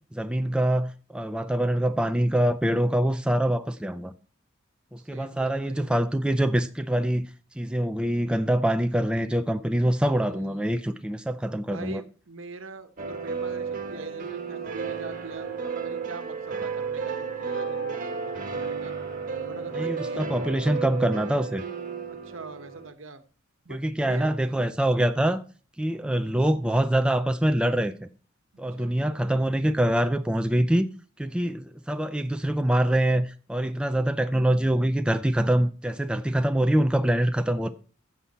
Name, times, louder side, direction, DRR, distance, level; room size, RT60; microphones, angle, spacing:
voice 1, 0.1-4.1 4.9-7.3 7.6-12.0 19.7-21.6 23.7-25.4 25.8-28.1 28.6-30.9 31.2-37.7, right 1 dB, 5° right, 0.5 m, -24 dB
voice 2, 5.0-5.9 10.1-10.7 11.7-18.9 19.4-20.6 22.2-23.2 23.6-24.3 26.1-26.5 28.5-29.0, right 3 dB, 70° right, 1.3 m, -43 dB
sound 1, 13.0-22.9, right 5 dB, 45° right, 1.8 m, -33 dB
14.0 x 7.3 x 4.2 m
head